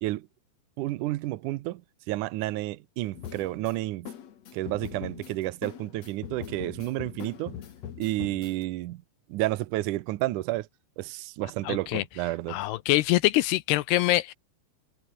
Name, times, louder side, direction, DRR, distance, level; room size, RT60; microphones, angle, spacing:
voice 1, 0.8-1.8 2.1-4.1 4.5-7.6 8.0-9.0 9.3-10.7 11.0-12.6, right 17 dB, 85° right, 1.8 m, -31 dB
sound 1, 3.1-8.6, left 9 dB, 50° left, 2.4 m, -42 dB
voice 2, 11.7-12.0 12.5-14.3, left 17 dB, 80° left, 2.8 m, -24 dB
omnidirectional pair, 4.6 m